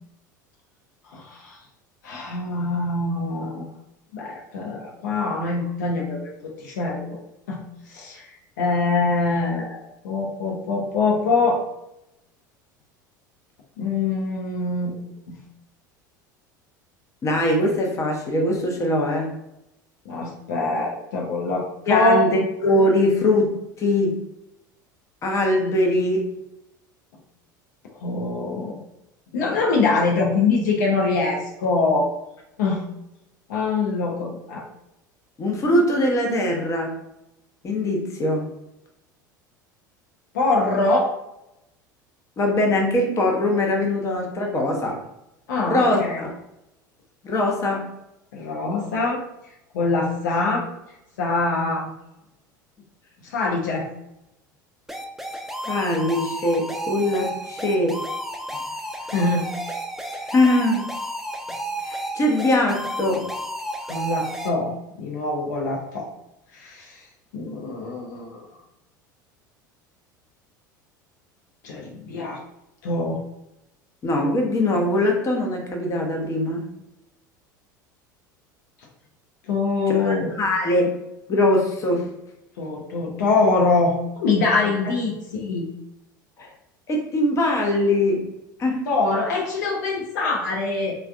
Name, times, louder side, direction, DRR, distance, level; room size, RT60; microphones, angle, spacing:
voice 1, 1.1-1.6 2.0-3.7 4.1-7.2 7.5-8.3 8.6-11.6 13.8-15.0 15.3-15.4 20.1-22.4 28.0-28.8 29.3-32.1 32.6-32.8 33.5-34.6 40.3-41.1 45.5-46.2 48.3-49.2 49.7-50.7 51.2-51.9 53.2-53.9 59.1-59.5 63.9-66.1 66.5-67.0 67.3-68.4 71.6-72.4 72.8-73.2 79.5-80.4 82.6-85.7 88.9-91.0, left 3 dB, 65° left, -1 dB, 0.6 m, -24 dB
voice 2, 17.2-19.3 21.8-24.2 25.2-26.3 35.4-37.0 37.6-38.5 42.4-45.0 45.7-46.3 47.2-47.9 55.7-58.0 60.2-60.9 61.8-63.3 74.0-76.7 79.9-80.9 81.3-82.1 86.4-86.5 86.9-88.3 88.6-88.8, left 1 dB, 30° left, 1 dB, 0.7 m, -22 dB
sound 1, 54.9-64.5, right 1 dB, 5° right, 0.4 m, -32 dB
3.3 x 2.2 x 2.4 m, 0.86 s
figure-of-eight pair, 70°, 11 cm